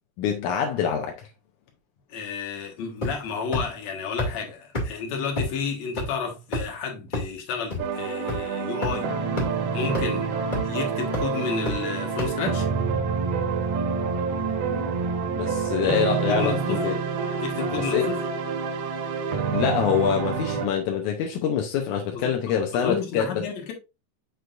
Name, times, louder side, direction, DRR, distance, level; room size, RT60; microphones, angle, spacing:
voice 1, 0.2-1.3 15.4-17.0 17.7-18.1 19.5-23.4, left 7 dB, 75° left, 1.8 m, -25 dB
voice 2, 2.1-9.1 9.7-10.3 10.6-12.7 15.8-16.9 17.4-18.2 22.1-22.3 22.7-23.7, left 5 dB, 55° left, 2.3 m, -31 dB
sound 1, 3.0-3.3 3.5-3.6 4.2-4.3 4.7-4.8 5.4-5.5 6.0-6.1 6.5-6.7 7.1-7.2 7.7-7.8 8.3-8.4 8.8-8.9 9.4-9.5 9.9-10.0 10.5-10.7 11.1-11.2 11.7-11.8 12.2-12.3, left 1 dB, 20° left, 1.5 m, -26 dB
sound 2, 7.8-20.7, right 5 dB, 85° right, 3.1 m, -27 dB
6.7 x 6.2 x 2.5 m
omnidirectional pair, 4.3 m